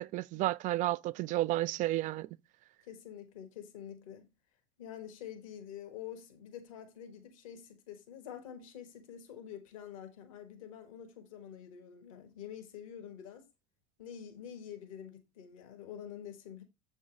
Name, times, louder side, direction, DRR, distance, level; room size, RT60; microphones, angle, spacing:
voice 1, 0.0-2.3, right 16 dB, 45° right, 0.4 m, -32 dB
voice 2, 2.8-4.3 4.8-13.5 14.0-16.6, left 9 dB, 70° left, 1.5 m, -47 dB
7.5 x 5.4 x 3.9 m
hypercardioid pair, 70°, 18 cm